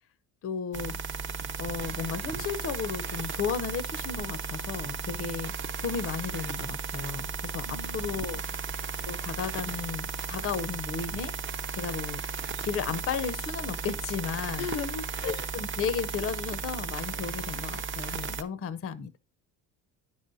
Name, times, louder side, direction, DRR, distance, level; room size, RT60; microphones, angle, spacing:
voice 1, 0.4-1.0 1.6-8.7 9.1-11.3 11.7-12.2 12.6-14.7 15.2-19.2, left 6 dB, 30° left, 0.5 m, -34 dB
sound 1, 0.7-18.4, right 5 dB, 25° right, 0.5 m, -35 dB
voice 2, 7.6-8.0 8.3-8.6 14.6-15.5, left 7 dB, 70° left, 0.7 m, -37 dB
9.3 x 5.5 x 2.5 m
hypercardioid pair, 60°, 50 cm